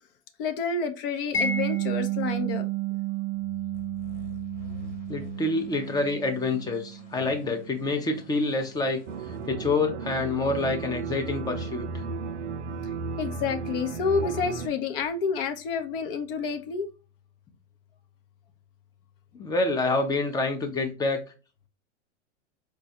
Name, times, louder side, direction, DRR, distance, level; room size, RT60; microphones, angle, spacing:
voice 1, 0.4-2.7 13.2-16.9, left 5 dB, 50° left, 0.6 m, -29 dB
Mallet percussion, 1.3-8.1, right 8 dB, 35° left, 1.0 m, -32 dB
sound 1, 3.7-9.5, left 2 dB, 80° left, 1.5 m, -48 dB
voice 2, 5.1-9.0 9.5-12.0 19.3-21.2, left 3 dB, 10° left, 0.5 m, -27 dB
sound 2, 9.1-14.7, right 4 dB, 80° right, 0.5 m, -34 dB
4.3 x 2.2 x 2.7 m
hypercardioid pair, 105°, 35 cm